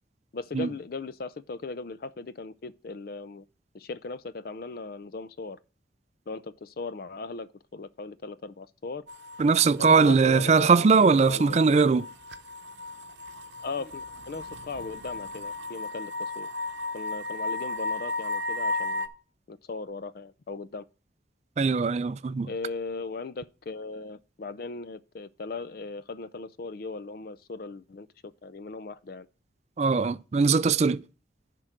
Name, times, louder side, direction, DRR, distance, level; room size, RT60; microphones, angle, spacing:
voice 1, 0.3-3.4 3.7-5.6 6.3-9.1 9.8-11.8 13.6-16.5 16.9-19.1 19.5-20.8 22.4-29.3, left 3 dB, 50° left, 0.4 m, -38 dB
sound 1, 9.1-19.1, left 2 dB, 75° right, 0.8 m, -35 dB
voice 2, 9.4-12.1 21.6-22.5 29.8-31.0, right 4 dB, 35° right, 0.3 m, -21 dB
10.5 x 3.8 x 5.9 m
head